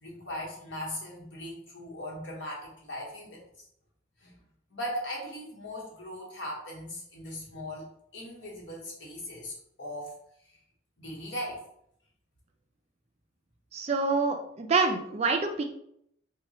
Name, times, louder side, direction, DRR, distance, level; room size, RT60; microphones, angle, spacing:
voice 1, 0.0-3.6 4.2-4.4 4.7-10.2 10.4-10.6 11.0-11.6, left 1 dB, 70° left, -3 dB, 1.1 m, -39 dB
voice 2, 13.7-15.6, right 4 dB, 30° right, 4 dB, 0.3 m, -26 dB
3.0 x 2.2 x 4.0 m, 0.72 s
head